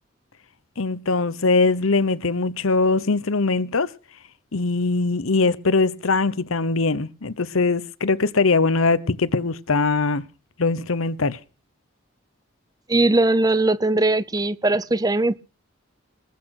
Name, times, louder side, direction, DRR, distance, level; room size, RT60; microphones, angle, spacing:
voice 1, 0.8-3.9 4.5-10.2 10.6-11.4, left 3 dB, 80° left, 0.9 m, -21 dB
voice 2, 12.9-15.4, right 2 dB, 20° right, 0.7 m, -20 dB
20.0 x 8.6 x 6.0 m
head